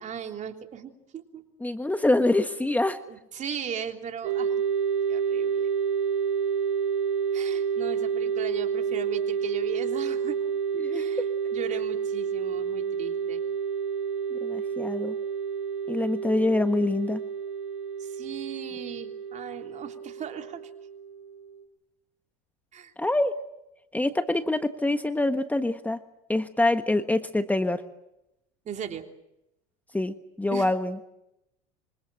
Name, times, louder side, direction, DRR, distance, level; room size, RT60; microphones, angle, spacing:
voice 1, 0.0-1.4 3.1-4.5 5.1-5.7 7.3-10.4 10.9-11.2 11.5-13.4 18.0-20.7 22.7-22.9 28.6-29.0 30.5-30.7, right 8 dB, 40° right, 5 dB, 3.3 m, -37 dB
voice 2, 1.6-3.0 10.7-11.2 14.3-15.2 15.9-17.2 23.0-23.3 23.9-26.0 26.3-27.8 29.9-31.0, left 2 dB, 10° left, 9 dB, 1.4 m, -25 dB
sound 1, 4.2-21.6, right 7 dB, 85° right, 4.8 m, -29 dB
26.0 x 25.5 x 7.7 m, 0.87 s
supercardioid pair, 90°, 19 cm